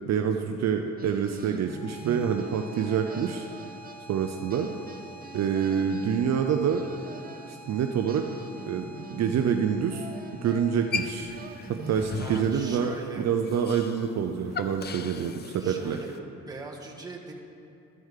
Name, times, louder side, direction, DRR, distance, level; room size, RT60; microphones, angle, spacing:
voice 1, 0.1-3.5 4.1-4.7 5.3-6.9 7.5-8.3 8.7-8.8 9.1-10.1 10.4-11.3 11.7-16.0, right 7 dB, 60° right, 5 dB, 0.6 m, -27 dB
sound 1, 1.0-4.2 4.5-7.6 8.1-13.3, right 4 dB, 30° right, 0.8 m, -45 dB
sound 2, 1.6-12.6, right 1 dB, 15° left, 1.5 m, -49 dB
sound 3, 10.9-16.2, left 5 dB, 35° left, 0.5 m, -38 dB
voice 2, 12.2-13.3 15.6-16.1 16.5-17.3, right 2 dB, 15° right, -2 dB, 1.5 m, -41 dB
12.5 x 4.7 x 6.4 m, 2.7 s
cardioid pair, 90°, 30 cm